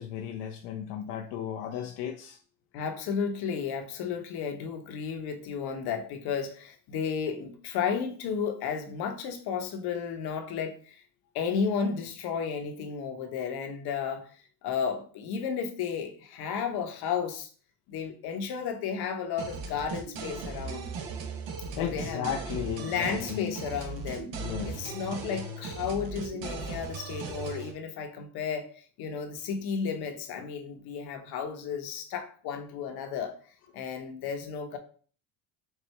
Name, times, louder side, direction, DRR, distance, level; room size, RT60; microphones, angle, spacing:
voice 1, 0.0-2.4 21.8-23.6 24.3-25.0, left 9 dB, 75° left, 0.6 m, -35 dB
voice 2, 2.7-11.0 11.3-14.3 14.6-17.5 17.9-20.9 21.8-22.3 22.8-24.3 24.6-33.3 33.7-34.8, left 6 dB, 55° left, 0.9 m, -33 dB
sound 1, 19.4-27.7, right 4 dB, 55° right, 0.9 m, -38 dB
4.6 x 2.5 x 3.2 m
supercardioid pair, 120°, 44 cm